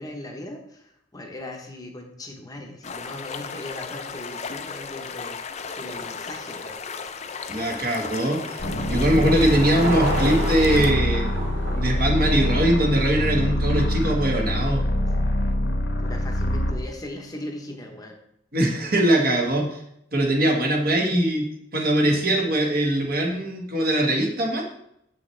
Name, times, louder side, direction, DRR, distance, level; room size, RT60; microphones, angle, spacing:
voice 1, 0.0-5.4 5.8-7.1 16.0-18.2, left 1 dB, 20° left, 2 dB, 0.8 m, -39 dB
sound 1, 2.8-10.9, left 5 dB, 35° left, 0.5 m, -35 dB
Car passing by / Engine, 7.4-13.9, right 1 dB, 75° right, 2.5 m, -32 dB
voice 2, 7.5-11.3 11.7-14.8 18.5-19.8 20.1-21.4 21.7-24.6, right 1 dB, 50° right, 0 dB, 1.5 m, -22 dB
sound 2, 8.6-16.8, left 1 dB, 60° left, 1.0 m, -24 dB
7.6 x 6.2 x 3.2 m, 0.75 s
head